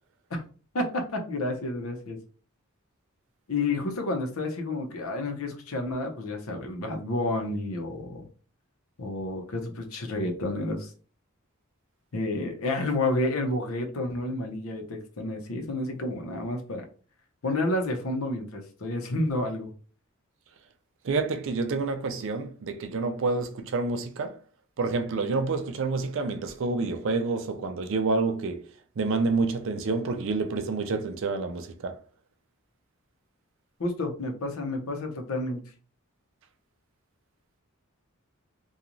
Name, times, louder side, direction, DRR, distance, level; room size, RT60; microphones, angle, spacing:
voice 1, 0.7-2.2 3.5-8.3 9.0-10.9 12.1-16.8 17.4-19.7 33.8-35.6, left 2 dB, 80° left, 0.7 m, -30 dB
voice 2, 21.0-24.4 24.8-28.6 29.0-32.0, right 3 dB, 65° right, 0.4 m, -28 dB
2.9 x 2.3 x 2.5 m
head